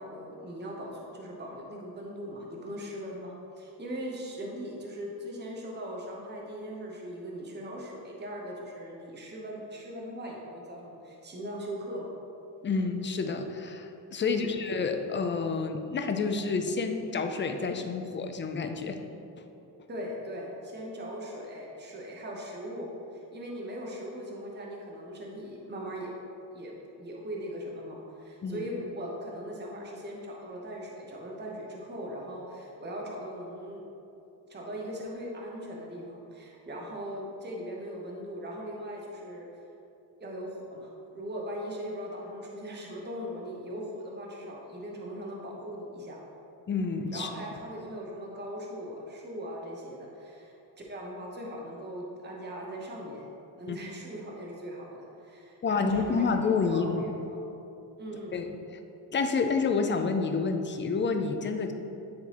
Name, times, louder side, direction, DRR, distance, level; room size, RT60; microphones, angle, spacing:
voice 1, 0.0-12.1 14.2-14.5 19.9-26.1 26.5-33.8 34.5-39.5 40.2-46.2 47.1-53.3 53.6-57.4 58.0-58.4, equal, 25° right, -2 dB, 0.9 m, -39 dB
voice 2, 12.6-19.0 19.4-19.5 28.4-28.7 46.7-47.3 53.7-53.8 55.6-57.1 58.3-58.6 59.1-61.7, left 4 dB, 30° left, 6 dB, 0.4 m, -29 dB
9.5 x 3.8 x 2.9 m, 2.8 s
cardioid pair, 110°, 44 cm